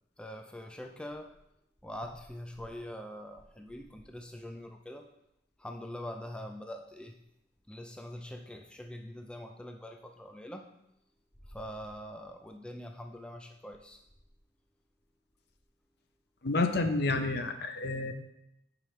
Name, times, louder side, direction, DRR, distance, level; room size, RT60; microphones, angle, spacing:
voice 1, 0.2-1.3 1.8-5.1 5.6-7.1 7.7-10.7 11.5-14.0, left 1 dB, 5° left, 3 dB, 0.4 m, -43 dB
voice 2, 16.4-18.1, left 3 dB, 60° left, 7 dB, 0.6 m, -29 dB
9.8 x 4.9 x 3.1 m, 0.82 s
head